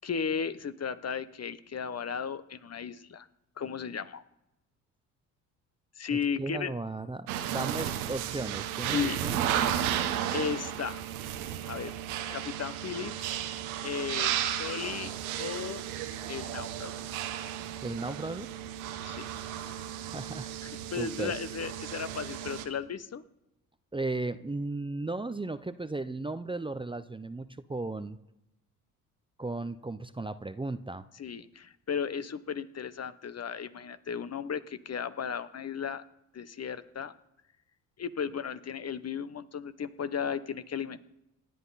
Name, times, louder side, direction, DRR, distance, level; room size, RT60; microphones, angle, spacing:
voice 1, 0.0-3.3 3.6-4.2 6.0-6.7 8.9-9.2 10.3-11.0 11.7-11.9 12.3-13.4 13.8-15.8 16.3-17.0 19.0-19.3 20.6-23.2 31.2-36.0 36.3-37.1 38.0-41.1, left 7 dB, 35° left, 13 dB, 1.2 m, -35 dB
voice 2, 6.1-9.4 17.8-18.5 19.6-20.5 21.0-21.3 23.9-28.2 29.4-31.0, right 2 dB, 10° right, 12 dB, 0.8 m, -36 dB
sound 1, 7.3-22.6, right 11 dB, 85° right, 1.4 m, -34 dB
27.5 x 11.0 x 4.2 m, 0.90 s
hypercardioid pair, 50°, 42 cm